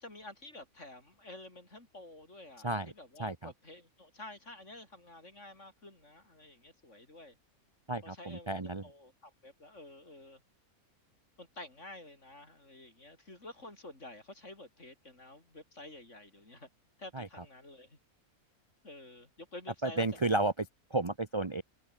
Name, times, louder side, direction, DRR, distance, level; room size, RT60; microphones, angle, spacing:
voice 1, 0.0-7.4 8.0-10.4 11.4-16.7 17.0-18.0 18.8-20.4, left 2 dB, 55° left, 6.3 m, -50 dB
voice 2, 3.2-3.5 7.9-8.8 17.1-17.3 19.8-21.6, right 2 dB, 25° right, 0.9 m, -32 dB
omnidirectional pair, 1.5 m